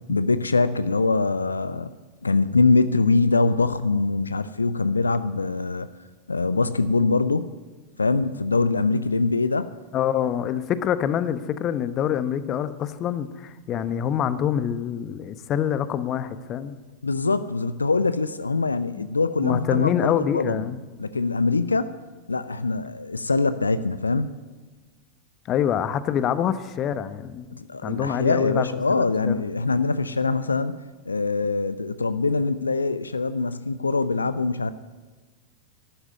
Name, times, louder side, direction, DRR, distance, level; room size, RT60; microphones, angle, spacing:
voice 1, 0.1-1.9 2.2-5.9 6.3-7.5 8.0-9.7 17.0-20.6 21.0-22.0 22.3-24.3 27.6-30.8 31.1-34.7, left 3 dB, 80° left, 14 dB, 0.5 m, -23 dB
voice 2, 9.9-16.8 19.0-19.1 19.4-20.8 25.5-27.5 27.8-29.3, left 9 dB, 30° left, 13 dB, 0.9 m, -26 dB
12.5 x 12.0 x 9.4 m, 1.3 s
figure-of-eight pair, 90°, 0 cm